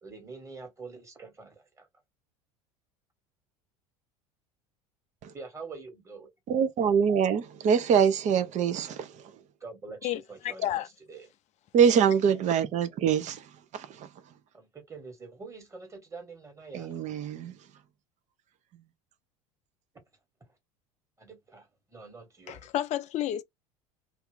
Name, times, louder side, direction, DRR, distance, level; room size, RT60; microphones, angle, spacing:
voice 1, 0.0-1.9 5.3-6.3 9.6-11.3 14.5-17.0 21.2-22.7, right 4 dB, 15° right, 1.6 m, -45 dB
voice 2, 6.5-9.1 11.7-13.4 13.7-14.1 16.7-17.5, right 7 dB, 45° right, 0.7 m, -24 dB
voice 3, 10.0-10.9 22.5-23.4, left 12 dB, 45° left, 0.5 m, -31 dB
2.7 x 2.5 x 3.5 m
hypercardioid pair, 75°, 17 cm